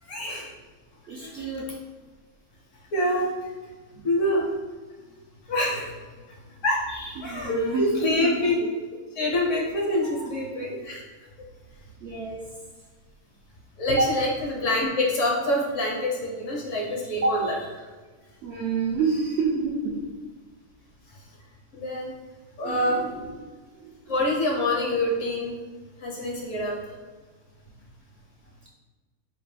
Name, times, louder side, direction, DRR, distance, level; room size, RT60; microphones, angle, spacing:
voice 1, 0.0-0.5 1.1-1.5 2.9-3.3 3.6-3.7 4.0-4.4 5.5-5.9 6.6-8.7 9.1-11.0 13.8-17.9 21.1-21.2 21.7-22.1 22.6-23.1 24.1-25.5 26.0-26.8, left 1 dB, 65° left, -2 dB, 1.1 m, -26 dB
voice 2, 1.1-1.7 3.9-4.0 7.2-8.2 10.2-10.3 12.0-12.4 14.0-14.1 17.2-17.3 18.4-20.1 22.6-23.2 23.8-23.9, right 4 dB, 65° right, -3 dB, 0.6 m, -28 dB
4.4 x 2.2 x 3.3 m, 1.4 s
omnidirectional pair, 1.5 m